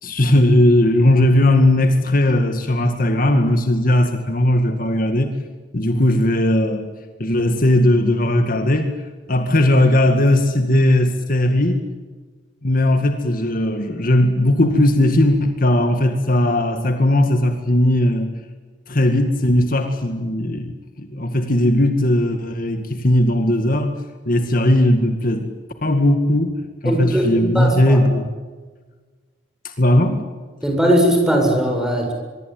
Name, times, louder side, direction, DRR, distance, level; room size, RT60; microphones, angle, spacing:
voice 1, 0.0-5.3 5.7-6.9 7.2-8.9 9.3-11.8 12.6-18.3 18.9-23.9 24.3-25.5 25.8-28.3 29.6-30.2, left 1 dB, 50° left, 6 dB, 2.0 m, -17 dB
voice 2, 26.9-28.0 30.6-32.1, right 1 dB, 5° right, 1 dB, 7.7 m, -19 dB
24.5 x 23.5 x 9.3 m, 1.4 s
head